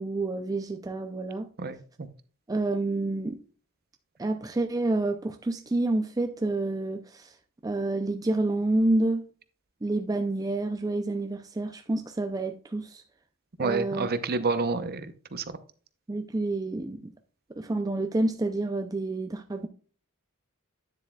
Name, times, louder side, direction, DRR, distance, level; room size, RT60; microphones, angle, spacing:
voice 1, 0.0-1.5 2.5-3.4 4.2-7.3 7.6-9.3 9.8-13.0 13.6-14.1 16.1-17.1 17.5-19.7, right 2 dB, 15° right, 0.5 m, -28 dB
voice 2, 1.6-2.1 13.6-15.6, right 4 dB, 45° right, 0.7 m, -29 dB
9.8 x 7.3 x 2.3 m
head